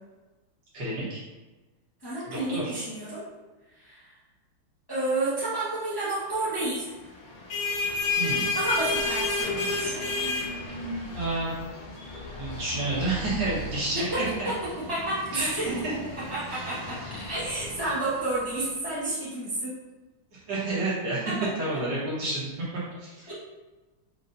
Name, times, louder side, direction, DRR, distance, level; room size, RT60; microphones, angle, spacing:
voice 1, 0.7-1.2 2.3-2.7 8.2-8.5 11.1-11.5 12.4-14.5 15.3-15.9 16.5-16.8 20.3-21.3 21.6-23.3, right 2 dB, 60° right, -8 dB, 1.8 m, -30 dB
voice 2, 2.0-3.2 3.8-4.0 4.9-6.9 8.5-10.0 13.9-14.2 14.4-14.6 14.9-15.7 16.3-19.7 21.3-21.5 23.3-23.4, right 2 dB, 15° left, -11 dB, 0.9 m, -30 dB
sound 1, 7.2-18.6, left 3 dB, 70° left, 1.8 m, -32 dB
5.4 x 2.9 x 2.6 m, 1.2 s
omnidirectional pair, 2.3 m